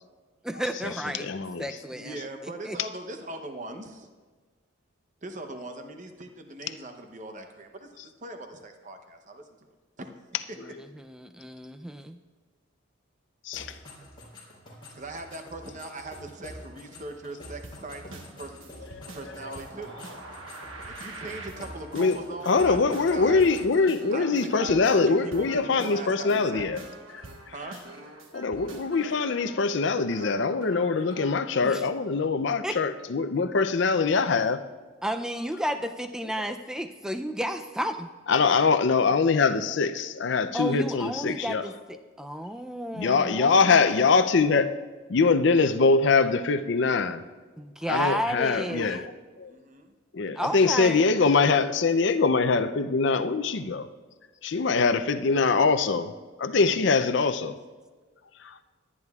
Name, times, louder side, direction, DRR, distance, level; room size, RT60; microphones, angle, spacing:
voice 1, 0.4-1.3 1.6-2.8 10.6-12.2 31.6-31.8 32.6-32.8 35.0-38.1 40.5-44.1 47.6-49.1 50.4-51.1 57.0-57.1, equal, 5° right, 0.4 m, -32 dB
voice 2, 1.2-1.8 13.5-13.7 21.9-22.2 22.5-26.8 27.1-27.2 28.3-34.6 38.3-41.6 42.9-44.8 45.1-47.2 47.9-49.1 49.4-49.5 50.1-53.9 54.4-56.1 56.4-57.6 58.4-58.5, left 4 dB, 60° left, 0.5 m, -23 dB
voice 3, 1.9-4.1 5.2-9.4 10.0-10.1 14.9-18.7 19.1-20.0 20.9-23.5 24.1-26.7 27.5-27.8 33.3-33.4 49.5-49.9, right 2 dB, 40° right, 0.7 m, -40 dB
sound 1, 13.5-23.9, left 1 dB, 25° left, 3.5 m, -47 dB
sound 2, 17.6-31.4, right 2 dB, 75° right, 1.3 m, -44 dB
21.5 x 9.7 x 2.4 m
head